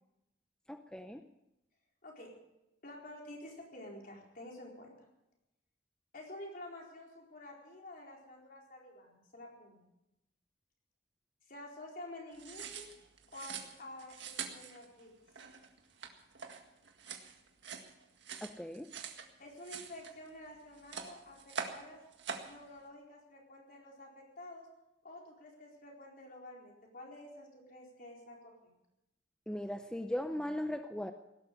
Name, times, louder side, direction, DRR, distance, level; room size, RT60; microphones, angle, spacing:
voice 1, 0.7-1.2 18.4-18.9 29.5-31.1, left 1 dB, 5° left, 7 dB, 0.6 m, -38 dB
voice 2, 2.8-5.0 6.1-9.9 11.5-12.9 13.3-15.1 19.4-22.0 22.4-24.7 25.0-28.5, left 1 dB, 50° left, -1 dB, 4.3 m, -50 dB
sound 1, 12.3-19.3 19.6-20.5 20.7-21.8 22.1-22.5, right 6 dB, 65° right, 1.9 m, -44 dB
17.5 x 12.5 x 6.7 m, 0.90 s
head